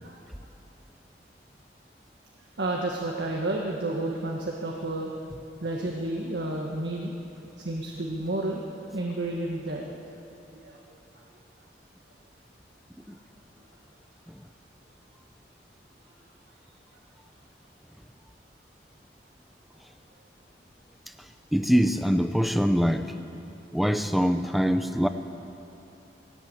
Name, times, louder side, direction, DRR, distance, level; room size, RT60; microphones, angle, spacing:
voice 1, 2.6-5.1 5.6-7.1 7.6-8.6 8.9-9.9 10.5-10.8, right 2 dB, 80° right, -1 dB, 1.7 m, -31 dB
voice 2, 21.5-23.2 23.7-25.1, equal, ahead, 8 dB, 0.7 m, -23 dB
19.5 x 17.5 x 8.1 m, 2.9 s
head